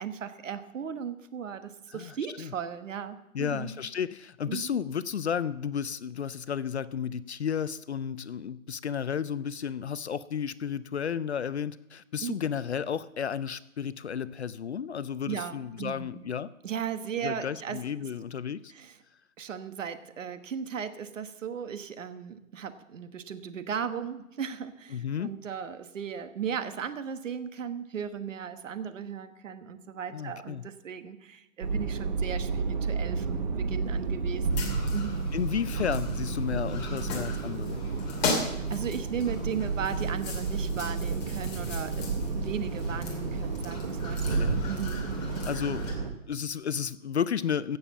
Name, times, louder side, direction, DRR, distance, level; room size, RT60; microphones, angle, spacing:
voice 1, 0.0-3.7 4.5-4.8 12.2-12.3 15.3-16.2 16.6-17.8 18.7-19.0 19.4-35.3 38.4-45.4, right 7 dB, 60° right, 10 dB, 1.3 m, -37 dB
voice 2, 1.9-2.5 3.3-16.5 17.2-18.7 24.9-25.3 30.1-30.6 35.3-37.8 44.3-44.6 45.5-46.0 46.3-47.8, left 8 dB, 50° left, 17 dB, 0.5 m, -32 dB
sound 1, 31.6-46.1, right 4 dB, 30° right, 1.0 m, -31 dB
sound 2, 34.5-45.9, left 4 dB, 30° left, 2.8 m, -38 dB
16.5 x 7.1 x 7.2 m, 0.91 s
hypercardioid pair, 170°, 42 cm